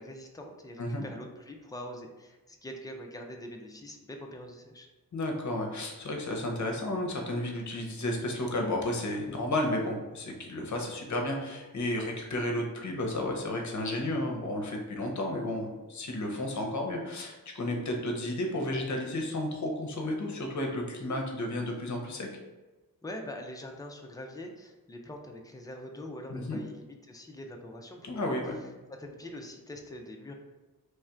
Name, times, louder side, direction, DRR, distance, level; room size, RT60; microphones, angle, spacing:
voice 1, 0.0-4.9 23.0-28.2 28.9-30.3, left 1 dB, 10° left, 2 dB, 0.4 m, -43 dB
voice 2, 5.1-22.3 26.3-26.6 28.0-28.6, left 1 dB, 50° left, 1 dB, 0.7 m, -32 dB
3.2 x 2.4 x 4.3 m, 1.1 s
wide cardioid pair, 130°, 37 cm